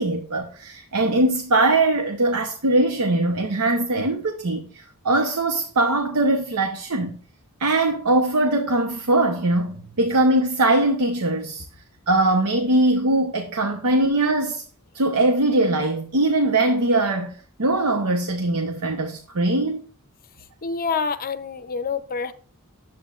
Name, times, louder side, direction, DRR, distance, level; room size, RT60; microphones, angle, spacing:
voice 1, 0.0-7.2 7.6-11.7 12.1-14.6 14.9-19.8, right 2 dB, 80° right, 0.9 m, -21 dB
voice 2, 20.6-22.3, left 5 dB, 40° left, 0.6 m, -27 dB
10.5 x 7.7 x 2.4 m
head